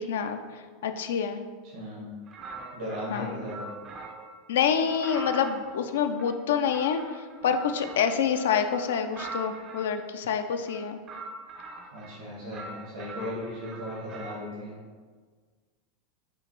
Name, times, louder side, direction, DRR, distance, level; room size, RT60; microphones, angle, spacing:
voice 1, 0.0-1.4 3.1-3.4 4.5-11.0, left 7 dB, 70° left, 7 dB, 0.3 m, -27 dB
voice 2, 1.7-2.1 2.7-3.7 11.9-14.7, left 1 dB, 75° right, -6 dB, 1.3 m, -36 dB
sound 1, 2.3-4.4 4.8-10.0 10.6-12.2 12.5-14.5, right 2 dB, 35° right, 0.4 m, -43 dB
6.0 x 2.5 x 3.0 m, 1.5 s
figure-of-eight pair, 85°, 0 cm